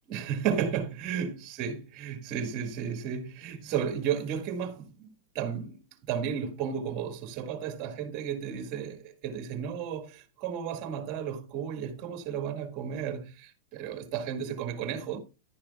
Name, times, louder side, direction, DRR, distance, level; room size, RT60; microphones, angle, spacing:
voice 1, 0.1-5.8 6.1-15.2, right 8 dB, 45° right, 1.9 m, -33 dB
10.5 x 10.5 x 2.3 m
hypercardioid pair, 125°, 0 cm